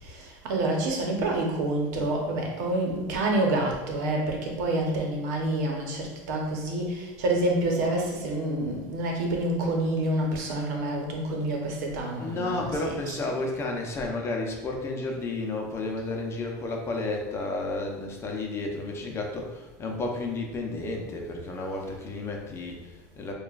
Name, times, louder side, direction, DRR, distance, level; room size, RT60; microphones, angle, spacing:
voice 1, 0.0-13.2, right 1 dB, 80° right, 0 dB, 1.0 m, -28 dB
voice 2, 12.2-23.3, left 2 dB, 30° left, 1 dB, 0.8 m, -32 dB
6.6 x 2.4 x 2.5 m, 1.1 s
supercardioid pair, 120°, 9 cm